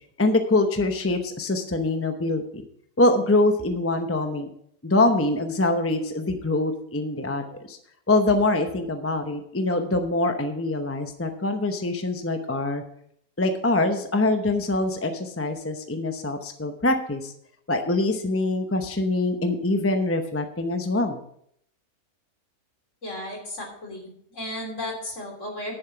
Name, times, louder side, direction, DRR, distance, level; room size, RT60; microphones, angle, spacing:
voice 1, 0.2-2.6 3.0-4.5 4.8-7.8 8.1-12.8 13.4-17.3 17.7-21.2, left 2 dB, 15° left, 6 dB, 0.6 m, -24 dB
voice 2, 23.0-25.7, left 1 dB, 50° left, 1 dB, 3.4 m, -34 dB
10.5 x 7.4 x 5.9 m, 0.69 s
omnidirectional pair, 1.6 m